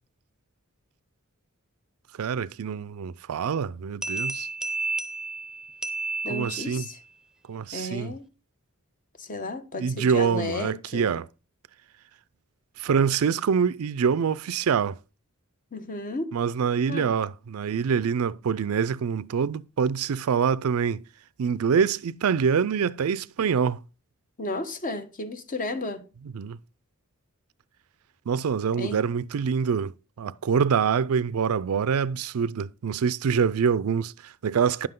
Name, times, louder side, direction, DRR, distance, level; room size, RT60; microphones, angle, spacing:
voice 1, 2.2-4.5 6.3-6.8 7.5-8.1 9.8-11.3 12.8-15.0 16.3-21.0 21.4-23.8 26.3-26.6 28.3-34.9, right 6 dB, 80° right, 0.4 m, -25 dB
sound 1, 4.0-7.0, right 3 dB, 5° right, 0.7 m, -32 dB
voice 2, 6.2-7.0 7.7-8.2 9.2-11.1 15.7-16.3 16.9-17.1 24.4-26.0 28.7-29.0, left 2 dB, 40° left, 1.1 m, -33 dB
10.0 x 7.7 x 3.7 m
head